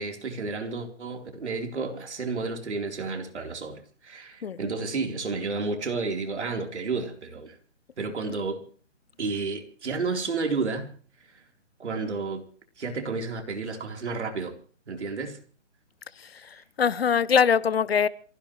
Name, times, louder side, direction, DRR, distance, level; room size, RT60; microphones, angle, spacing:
voice 1, 0.0-7.6 8.0-8.6 9.2-10.9 11.3-11.4 11.8-12.4 12.8-14.6 14.9-15.4, right 4 dB, 65° right, 4.1 m, -31 dB
voice 2, 16.2-18.1, left 7 dB, 55° left, 0.8 m, -23 dB
27.5 x 16.0 x 3.2 m
hypercardioid pair, 160°, 36 cm